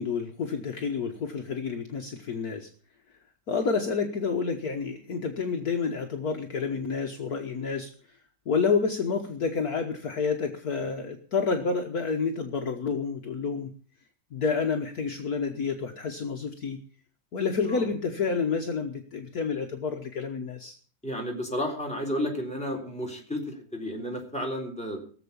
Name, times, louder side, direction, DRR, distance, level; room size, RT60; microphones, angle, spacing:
voice 1, 0.0-2.7 3.5-8.2 8.5-13.7 14.3-16.8 17.3-20.7, left 5 dB, 55° left, 3 dB, 1.6 m, -29 dB
voice 2, 21.0-25.0, equal, 5° left, 0 dB, 3.8 m, -32 dB
18.5 x 7.4 x 6.9 m, 0.43 s
omnidirectional pair, 2.0 m